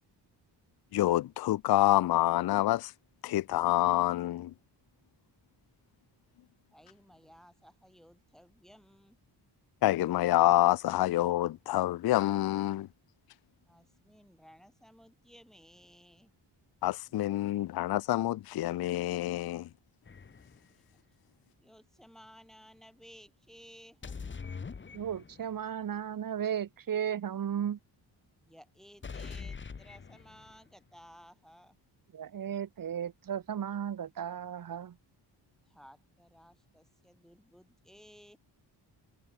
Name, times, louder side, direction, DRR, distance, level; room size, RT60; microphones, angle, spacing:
voice 1, 0.9-2.9 3.2-4.5 9.8-12.9 16.8-19.7, left 15 dB, 60° left, 0.5 m, -27 dB
voice 2, 6.7-9.2 13.7-16.3 21.6-24.5 28.4-31.8 35.6-38.4, equal, ahead, 4.6 m, -57 dB
sound 1, 20.1-20.7 24.0-25.6 29.0-30.6, left 5 dB, 25° left, 1.2 m, -43 dB
voice 3, 24.9-27.8 32.1-35.0, right 9 dB, 50° right, 1.3 m, -35 dB
wide cardioid pair, 145°, 44 cm